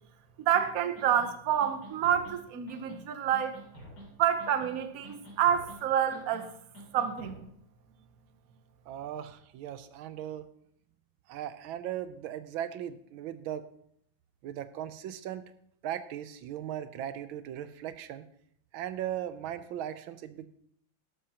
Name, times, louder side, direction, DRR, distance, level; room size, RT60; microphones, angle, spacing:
voice 1, 0.4-3.6 4.2-6.5 6.9-7.5, right 9 dB, 55° right, 9 dB, 1.2 m, -28 dB
sound 1, 0.5-0.6 1.0-1.3 1.6-2.4 2.7-3.0 3.3-4.1 4.4-4.8 5.0-5.8 6.1-6.4 6.7-7.4, equal, 85° left, 4.4 m, -48 dB
voice 2, 8.9-10.5 11.3-13.6 14.4-15.5 15.8-18.3 18.7-20.5, right 11 dB, 85° right, 12 dB, 1.4 m, -38 dB
12.5 x 12.0 x 2.9 m, 0.70 s
omnidirectional pair, 2.2 m